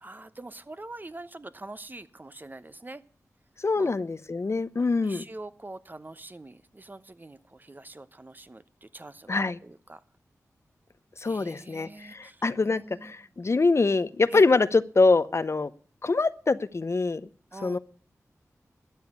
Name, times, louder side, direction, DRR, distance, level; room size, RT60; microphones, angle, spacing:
voice 1, 0.0-3.0 3.7-3.9 4.8-10.0 11.2-13.1 14.3-14.4 17.5-17.8, right 2 dB, 30° right, 13 dB, 0.9 m, -44 dB
voice 2, 3.6-5.2 9.3-9.6 11.2-15.7 16.0-17.2 17.6-17.8, left 3 dB, 50° left, 15 dB, 0.7 m, -24 dB
13.0 x 8.0 x 8.4 m, 0.44 s
cardioid pair, 50°, 6 cm